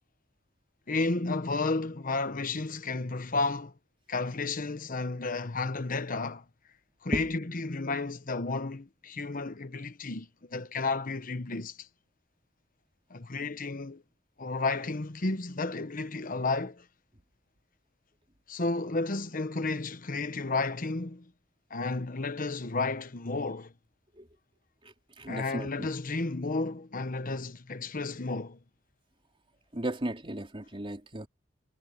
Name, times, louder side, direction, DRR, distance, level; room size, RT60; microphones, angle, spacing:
voice 1, 0.9-3.7 4.1-6.4 7.0-11.9 13.1-14.0 14.4-16.9 18.5-21.3 21.7-23.7 25.3-28.6, left 3 dB, 45° left, 1.1 m, -32 dB
voice 2, 25.2-25.9 29.7-31.3, right 1 dB, 30° right, 3.7 m, -34 dB
head